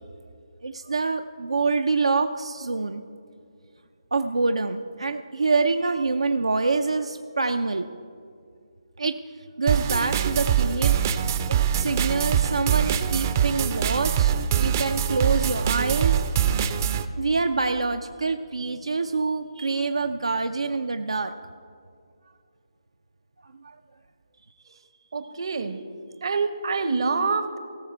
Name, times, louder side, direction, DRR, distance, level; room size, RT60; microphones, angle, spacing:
voice 1, 0.6-3.0 4.1-7.8 9.0-9.2 9.6-11.0 11.5-16.2 17.2-21.3 23.4-23.5, right 3 dB, 85° right, 7 dB, 0.5 m, -26 dB
sound 1, 9.7-17.0, right 9 dB, 30° right, 0.5 m, -23 dB
voice 2, 25.1-25.8 26.2-27.6, right 4 dB, 60° right, 10 dB, 0.9 m, -26 dB
17.5 x 6.5 x 4.4 m, 2.4 s
figure-of-eight pair, 150°, 3 cm